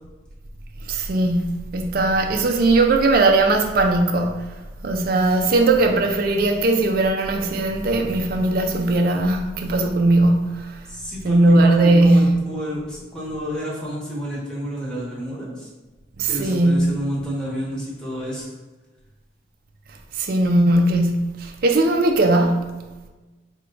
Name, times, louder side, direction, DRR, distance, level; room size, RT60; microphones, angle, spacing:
voice 1, 0.9-4.5 4.8-10.8 11.2-12.4 16.2-16.9 20.1-22.8, right 2 dB, 55° right, 0.4 m, -19 dB
voice 2, 10.9-15.7 16.2-18.5, equal, 5° left, 1.0 m, -30 dB
4.5 x 2.2 x 3.7 m
head